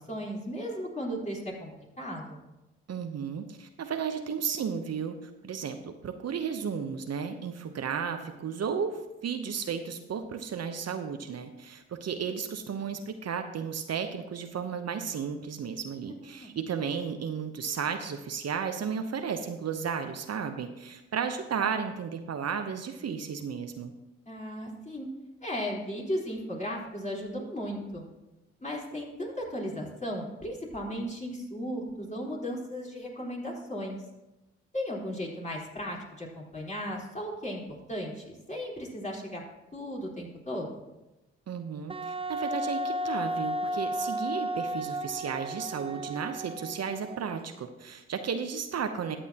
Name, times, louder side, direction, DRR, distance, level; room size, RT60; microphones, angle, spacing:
voice 1, 0.0-2.4 16.4-16.5 24.3-25.1 25.4-28.0 28.6-34.0 34.7-37.6 37.9-39.4 39.7-40.8, equal, 25° left, -3 dB, 4.1 m, -36 dB
voice 2, 2.9-23.9 41.5-49.2, right 6 dB, 60° right, 7 dB, 0.9 m, -34 dB
Wind instrument woodwind instrument, 41.9-47.4, right 1 dB, 20° right, 0.5 m, -33 dB
13.0 x 8.8 x 2.9 m, 1.0 s
supercardioid pair, 50°, 29 cm